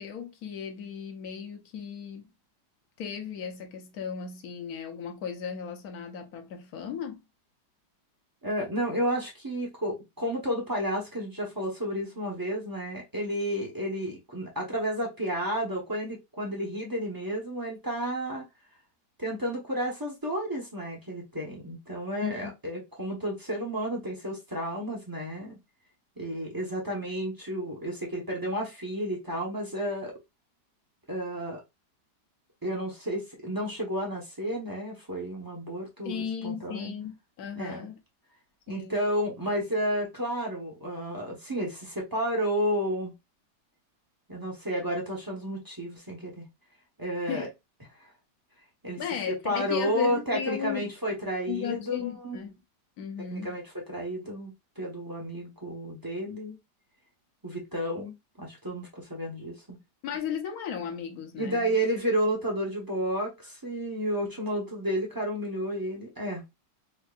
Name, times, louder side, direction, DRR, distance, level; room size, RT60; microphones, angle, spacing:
voice 1, 0.0-2.3 3.0-7.2 22.2-22.5 36.0-38.0 38.7-39.0 47.3-47.5 49.0-50.9 51.5-52.6 53.0-53.5 60.0-61.7, left 8 dB, 65° left, 1.2 m, -36 dB
voice 2, 8.4-18.4 19.2-25.6 26.2-30.1 31.1-31.6 32.6-36.9 37.6-37.9 38.7-43.1 44.3-46.4 47.0-47.5 48.8-52.4 53.3-53.6 53.9-56.6 57.4-59.8 61.4-66.4, equal, 20° right, 0.5 m, -31 dB
4.5 x 2.6 x 2.3 m
omnidirectional pair, 1.9 m